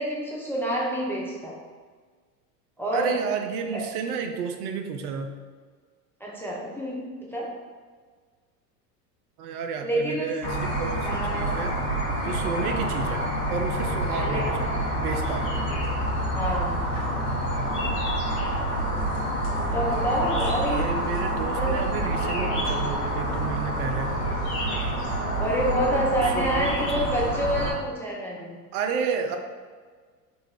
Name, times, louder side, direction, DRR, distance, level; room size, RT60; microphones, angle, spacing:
voice 1, 0.0-1.6 2.8-3.1 3.7-3.9 6.2-7.5 9.8-10.4 11.0-11.6 14.1-14.6 16.3-16.9 19.6-20.9 21.3-21.9 25.4-28.6, equal, 5° left, -4 dB, 0.4 m, -28 dB
voice 2, 2.9-5.3 9.4-11.7 12.2-13.2 13.5-15.5 19.7-20.1 20.6-24.1 26.2-26.8 28.7-29.4, right 6 dB, 65° right, 5 dB, 0.6 m, -31 dB
sound 1, 10.4-27.7, right 1 dB, 65° left, 1.3 m, -27 dB
4.0 x 2.4 x 4.3 m, 1.6 s
hypercardioid pair, 80°, 48 cm